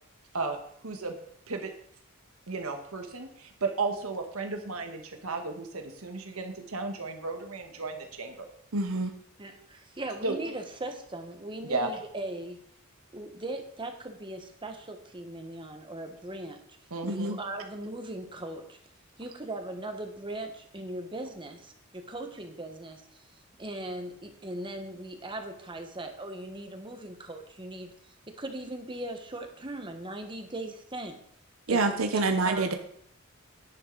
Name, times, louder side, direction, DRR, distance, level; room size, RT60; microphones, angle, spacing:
voice 1, 0.8-1.2 1.5-1.7 2.5-8.5 10.2-10.4 11.7-11.9 16.9-17.4, right 3 dB, 85° right, 4 dB, 1.3 m, -34 dB
voice 2, 8.7-9.1 17.1-17.4 31.7-32.7, right 3 dB, 65° right, 6 dB, 0.8 m, -26 dB
voice 3, 9.4-12.6 13.1-16.6 17.1-18.8 19.2-23.2 23.6-27.9 28.3-31.2 31.7-32.7, right 1 dB, 25° right, 5 dB, 1.3 m, -39 dB
10.0 x 10.0 x 3.9 m, 0.67 s
head